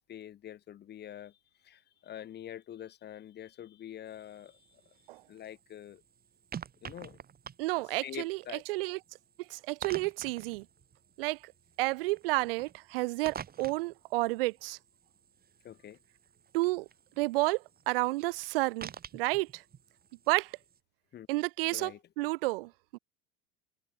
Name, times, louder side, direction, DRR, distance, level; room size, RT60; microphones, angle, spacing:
voice 1, 0.0-1.4 1.6-4.8 5.3-6.0 6.8-7.2 8.0-8.6 15.6-16.0 21.1-21.3 21.7-22.0, left 11 dB, 35° left, 1.2 m, -45 dB
sound 1, 4.1-20.8, right 8 dB, 30° right, 5.2 m, -50 dB
voice 2, 7.6-8.4 8.7-9.0 9.5-10.6 11.2-11.5 11.8-14.8 16.5-16.9 17.2-19.6 20.3-20.6 21.3-23.0, right 22 dB, 75° right, 0.5 m, -31 dB
hypercardioid pair, 90°, 29 cm